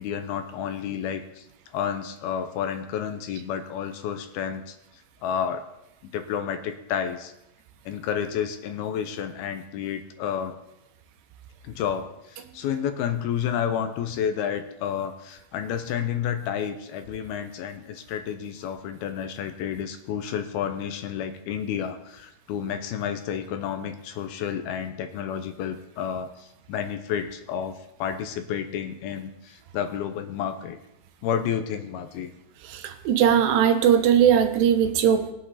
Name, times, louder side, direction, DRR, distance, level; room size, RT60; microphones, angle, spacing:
voice 1, 0.0-1.5 1.7-4.8 5.2-5.6 6.0-7.3 7.9-10.5 11.6-27.7 28.0-30.8 31.2-32.3, left 8 dB, 75° left, 8 dB, 2.5 m, -30 dB
voice 2, 32.7-35.3, right 8 dB, 85° right, 7 dB, 3.2 m, -19 dB
21.0 x 8.4 x 4.1 m, 0.87 s
omnidirectional pair, 4.7 m